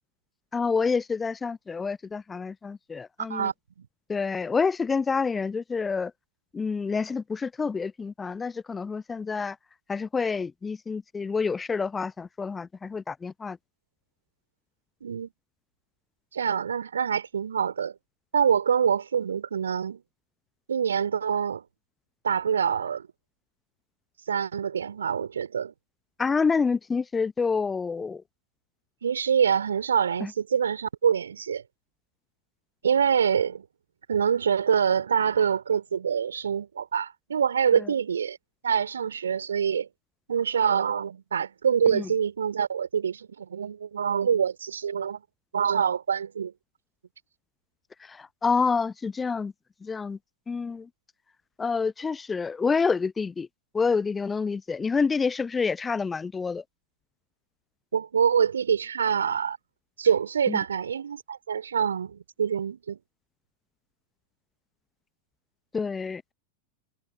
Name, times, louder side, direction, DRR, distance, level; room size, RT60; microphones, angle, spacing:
voice 1, 0.5-3.5 4.1-6.1 6.5-9.6 9.9-13.6 26.2-28.2 30.2-30.3 37.7-37.9 41.9-42.1 48.0-49.5 49.8-50.2 50.5-50.9 51.6-53.5 53.7-56.6 60.5-60.6 65.7-66.3, left 5 dB, 15° left, 0.7 m, -28 dB
voice 2, 3.3-3.9 15.0-15.3 16.3-17.9 18.3-20.0 20.7-21.6 22.2-23.1 24.3-25.7 29.0-31.6 32.8-33.6 34.1-38.4 38.6-39.9 40.3-45.2 45.5-46.5 57.9-59.6 60.0-63.0, right 7 dB, 70° right, 3.5 m, -25 dB
figure-of-eight pair, 90°, 0 cm